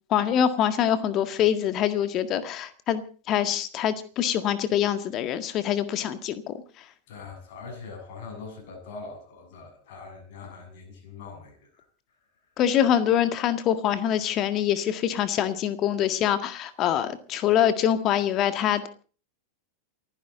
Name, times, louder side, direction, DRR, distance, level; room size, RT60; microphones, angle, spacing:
voice 1, 0.1-6.5 12.6-18.9, left 10 dB, 35° left, 11 dB, 1.8 m, -24 dB
voice 2, 7.1-11.8, left 4 dB, 50° left, 2 dB, 6.8 m, -42 dB
28.5 x 10.5 x 3.9 m, 0.39 s
figure-of-eight pair, 90°, 0 cm